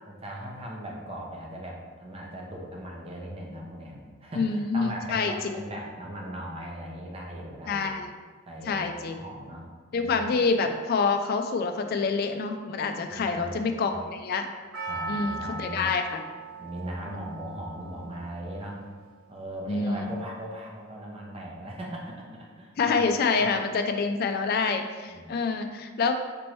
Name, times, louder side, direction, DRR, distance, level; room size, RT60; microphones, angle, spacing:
voice 1, 0.1-7.9 8.5-10.4 13.1-14.0 14.9-15.9 16.6-18.9 19.3-23.1 25.1-25.4, right 1 dB, 30° right, -2 dB, 0.7 m, -39 dB
voice 2, 4.4-5.6 7.7-8.1 8.7-9.2 9.9-14.5 15.1-16.2 17.1-17.3 19.7-20.1 22.8-26.2, left 4 dB, 50° left, 6 dB, 0.3 m, -27 dB
Percussion, 14.7-19.1 19.4-19.5, right 3 dB, 90° right, 0.7 m, -39 dB
5.1 x 3.0 x 3.1 m, 1.5 s
head